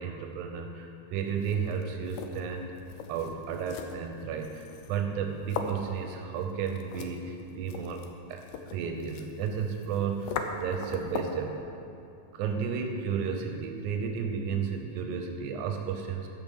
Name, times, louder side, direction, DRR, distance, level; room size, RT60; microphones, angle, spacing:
voice 1, 0.0-2.7 3.1-8.0 8.3-11.6 12.3-16.3, right 6 dB, 90° right, 4 dB, 2.2 m, -33 dB
sound 1, 1.3-11.5, left 5 dB, 75° left, 2.0 m, -41 dB
13.0 x 5.8 x 7.3 m, 2.6 s
omnidirectional pair, 3.4 m